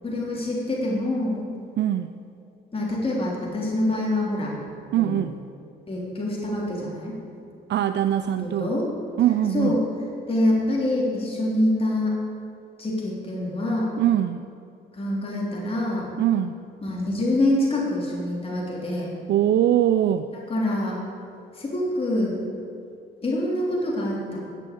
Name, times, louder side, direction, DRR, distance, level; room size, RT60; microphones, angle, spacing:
voice 1, 0.0-1.4 2.7-4.5 4.9-5.2 5.9-7.2 8.4-8.9 9.5-9.8 10.3-12.1 12.8-13.9 14.9-16.1 16.8-19.1 20.5-21.0 21.5-22.4 23.2-24.4, left 1 dB, 30° left, -4 dB, 3.4 m, -25 dB
voice 2, 1.8-2.1 4.9-5.4 7.7-8.7 9.2-9.8 14.0-14.4 16.2-16.6 19.3-20.3, right 11 dB, 60° right, 10 dB, 0.5 m, -22 dB
12.0 x 8.6 x 8.4 m, 2.6 s
cardioid pair, 90°, 20 cm